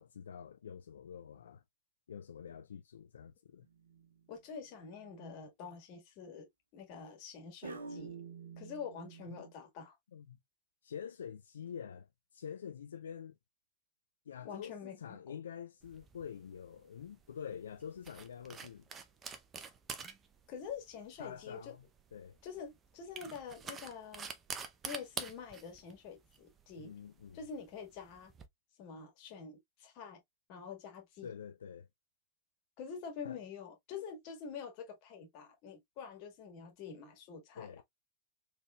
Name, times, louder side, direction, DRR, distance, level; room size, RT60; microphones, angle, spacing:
voice 1, 0.0-1.6 2.1-3.7 9.3-9.4 10.1-10.4 10.8-13.4 14.3-18.8 21.2-21.8 22.1-22.4 26.8-27.4 31.2-31.9 33.2-33.4 37.6-37.8, left 8 dB, 70° left, 0.4 m, -47 dB
sound 1, 3.7-4.2 4.8-5.3 7.6-9.5, right 5 dB, 75° right, 0.8 m, -48 dB
voice 2, 4.3-8.2 8.6-9.9 14.4-15.4 20.5-21.7 22.4-24.3 24.8-26.9 27.3-28.3 28.8-30.2 30.5-31.3 32.8-37.8, left 6 dB, 45° left, 1.7 m, -46 dB
sound 2, 15.8-28.5, right 5 dB, 25° right, 0.7 m, -48 dB
4.2 x 3.3 x 2.3 m
figure-of-eight pair, 90°, 0 cm